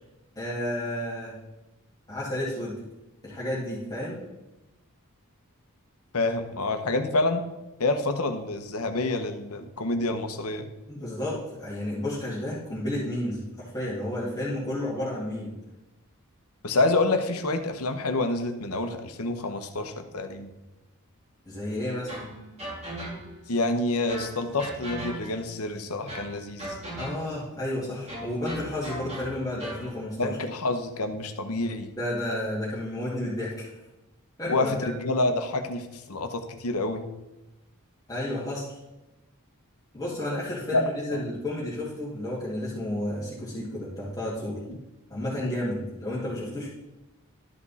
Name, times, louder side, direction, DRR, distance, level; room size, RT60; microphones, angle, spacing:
voice 1, 0.4-1.3 2.1-2.8 3.2-4.2 10.9-15.5 21.5-22.1 27.0-30.4 32.0-33.7 34.4-34.9 38.1-38.8 39.9-44.6 45.1-46.7, left 1 dB, 15° left, -9 dB, 2.2 m, -31 dB
voice 2, 6.1-7.4 7.8-10.7 16.6-20.5 23.5-26.8 30.2-31.9 34.5-37.1 40.7-40.8 41.1-41.2 44.7-44.8, left 2 dB, 70° left, 7 dB, 1.0 m, -27 dB
sound 1, 22.1-23.5 24.1-25.5 26.1-27.4 28.1-29.9, right 1 dB, 30° right, 3.4 m, -38 dB
12.5 x 5.2 x 4.2 m, 0.99 s
head